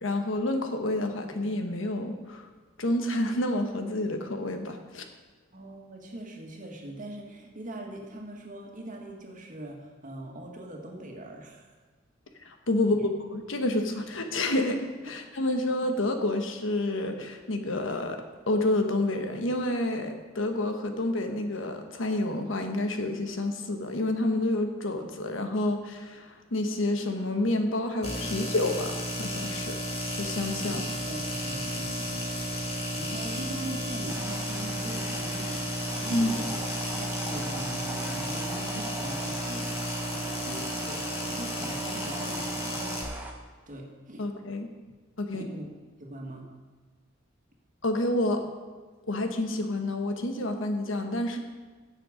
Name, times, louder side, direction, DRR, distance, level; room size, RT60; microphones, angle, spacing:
voice 1, 0.0-2.5 2.8-5.0 12.4-29.8 30.1-30.8 36.1-36.3 44.2-44.7 45.2-45.5 47.8-48.4 49.1-51.4, left 1 dB, 75° left, 5 dB, 1.2 m, -29 dB
voice 2, 5.5-11.7 12.7-13.1 15.1-15.2 30.6-35.6 35.9-36.6 36.9-39.8 40.1-43.0 43.7-44.2 45.3-45.6 46.0-46.5, right 1 dB, 40° right, 0 dB, 1.9 m, -41 dB
sound 1, 28.0-43.0, equal, 30° left, 2.2 m, -33 dB
sound 2, 34.1-43.3, right 1 dB, 10° right, 1.2 m, -41 dB
16.0 x 6.8 x 5.0 m, 1.4 s
head